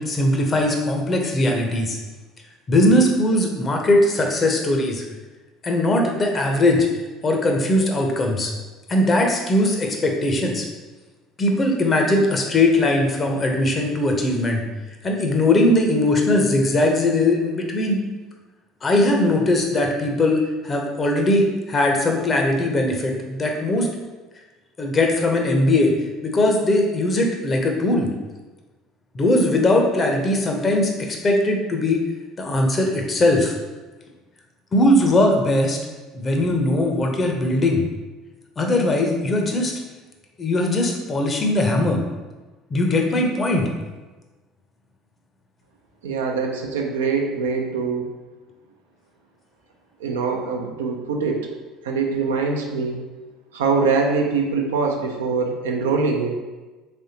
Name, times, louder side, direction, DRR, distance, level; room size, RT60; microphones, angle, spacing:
voice 1, 0.0-2.0 2.7-5.0 5.6-6.9 7.2-8.5 8.9-10.7 11.4-14.6 15.0-18.0 18.8-23.9 24.8-25.9 26.2-28.1 29.1-32.0 32.4-33.5 34.7-35.8 36.1-37.8 38.6-39.7 40.4-42.0 42.7-43.7, left 1 dB, 35° left, 2 dB, 0.7 m, -20 dB
voice 2, 46.0-48.1 50.0-51.5 51.8-53.0 53.5-56.4, right 4 dB, 80° right, 2 dB, 0.4 m, -23 dB
3.4 x 3.4 x 2.8 m, 1.2 s
hypercardioid pair, 65°, 0 cm